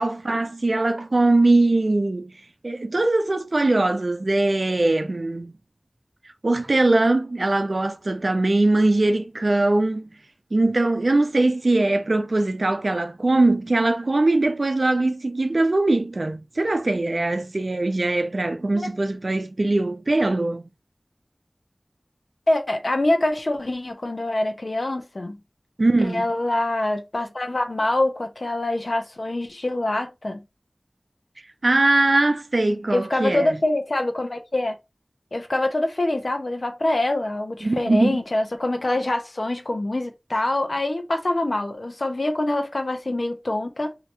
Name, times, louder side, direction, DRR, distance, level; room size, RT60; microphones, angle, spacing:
voice 1, 0.0-2.3 2.6-5.5 6.4-10.1 10.5-20.7 25.8-26.3 31.6-33.5 37.6-38.2, right 2 dB, 70° right, 0.5 m, -21 dB
voice 2, 22.5-25.4 26.0-30.4 32.9-34.8 35.3-44.0, left 1 dB, 70° left, 0.7 m, -25 dB
2.9 x 2.8 x 3.3 m
wide cardioid pair, 45°, 0 cm